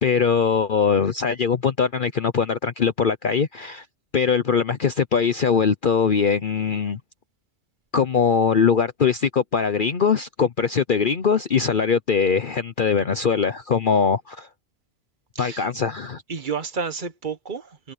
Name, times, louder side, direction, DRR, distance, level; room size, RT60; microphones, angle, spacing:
voice 1, 0.0-3.8 4.1-7.0 7.9-14.5 15.4-16.2, left 6 dB, 45° left, 0.9 m, -21 dB
voice 2, 15.3-15.7 16.3-17.9, right 5 dB, 40° right, 1.3 m, -31 dB
omnidirectional pair, 1.3 m